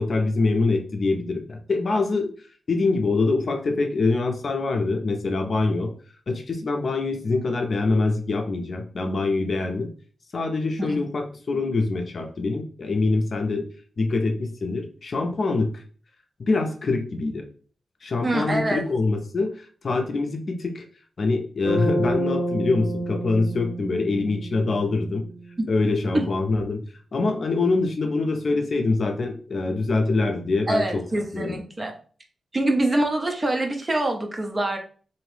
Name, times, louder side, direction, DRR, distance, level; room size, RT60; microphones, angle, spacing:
voice 1, 0.0-2.3 2.7-5.9 6.3-9.9 10.3-13.7 14.0-15.7 16.5-17.4 18.0-20.9 21.2-25.2 25.7-26.8 27.1-31.6, left 3 dB, 45° left, 4 dB, 0.5 m, -24 dB
voice 2, 18.2-18.8 25.6-25.7 26.1-26.3 30.7-31.9 32.5-34.8, right 1 dB, 25° right, 4 dB, 0.5 m, -24 dB
Bass guitar, 21.6-25.7, right 1 dB, 80° right, 1.4 m, -29 dB
2.9 x 2.6 x 3.2 m, 0.42 s
wide cardioid pair, 155°, 0 cm